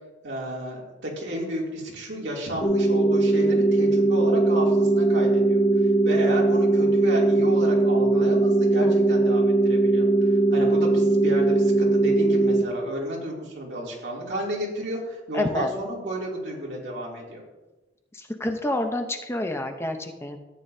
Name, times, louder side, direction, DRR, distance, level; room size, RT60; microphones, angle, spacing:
voice 1, 0.2-5.6 6.0-17.4, equal, 70° right, -3 dB, 2.7 m, -32 dB
sound 1, 2.6-12.6, right 2 dB, 40° left, 3.6 m, -20 dB
voice 2, 15.3-15.7 18.1-20.4, left 1 dB, 15° left, 5 dB, 0.7 m, -28 dB
13.5 x 9.3 x 2.7 m, 1.1 s
head